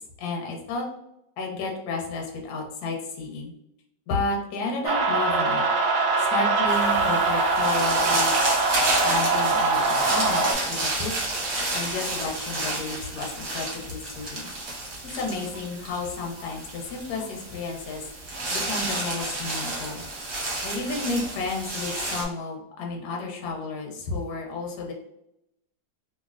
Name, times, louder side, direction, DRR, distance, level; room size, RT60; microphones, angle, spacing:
voice 1, 0.2-0.9 1.4-3.5 4.1-5.7 6.2-8.5 9.0-11.1 11.7-14.5 15.1-20.0 20.6-24.9, left 3 dB, 65° left, 0 dB, 1.0 m, -32 dB
sound 1, 4.8-10.5, right 3 dB, 85° right, 0.7 m, -23 dB
sound 2, 6.7-22.2, right 2 dB, 50° right, 1.1 m, -31 dB
3.1 x 2.6 x 2.4 m, 0.80 s
omnidirectional pair, 2.1 m